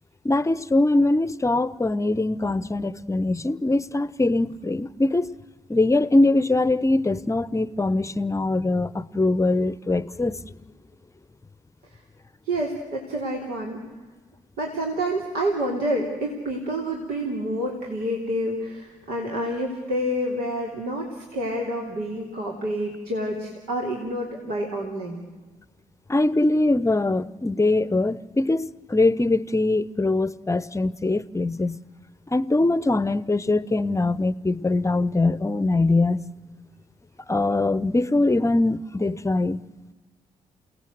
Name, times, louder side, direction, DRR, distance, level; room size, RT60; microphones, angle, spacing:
voice 1, 0.2-5.3 5.7-10.4 26.1-31.8 32.3-36.2 37.3-39.6, left 2 dB, 20° left, 0.8 m, -22 dB
voice 2, 12.5-13.8 14.6-25.2, equal, 75° right, 3.1 m, -28 dB
28.5 x 17.5 x 7.9 m
hypercardioid pair, 45°, 16 cm